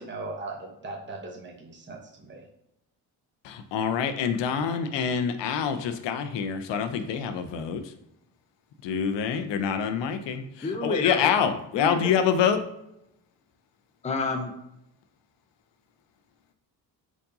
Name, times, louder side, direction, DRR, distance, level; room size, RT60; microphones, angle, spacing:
voice 1, 0.0-2.4, right 2 dB, 25° right, 0 dB, 0.9 m, -39 dB
voice 2, 3.5-7.8 8.8-10.4 10.8-12.6, left 7 dB, 60° left, 8 dB, 0.6 m, -26 dB
voice 3, 10.6-11.4 11.7-12.1 14.0-14.5, left 3 dB, 15° left, 4 dB, 0.6 m, -29 dB
4.6 x 2.6 x 2.6 m, 0.84 s
supercardioid pair, 60°, 49 cm